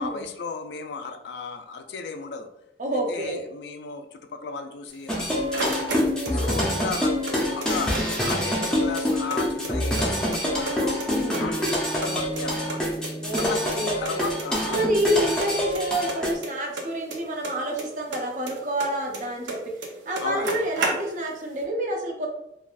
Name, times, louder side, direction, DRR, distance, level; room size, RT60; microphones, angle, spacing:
voice 1, 0.0-2.5 3.1-6.0 6.3-11.0 11.4-12.8 13.3-14.8 20.2-20.6, left 4 dB, 70° left, 6 dB, 0.3 m, -35 dB
voice 2, 2.8-3.4 6.1-6.6 11.1-11.6 13.2-14.3 14.7-19.6 20.1-22.3, right 1 dB, 45° right, 0 dB, 0.5 m, -28 dB
sound 1, 4.9-6.7 6.9-8.0 8.3-8.4 8.6-10.1 10.3-11.1 11.3-12.8 13.0-13.1 13.4-13.5 13.7-13.8 14.0-14.5 14.7-15.1 15.4-17.8 18.1-19.6 19.8-19.9 20.1-21.4, right 2 dB, 85° right, 0.6 m, -32 dB
sound 2, 5.1-16.3, equal, 5° left, 0.5 m, -26 dB
3.2 x 2.4 x 2.4 m, 0.85 s
head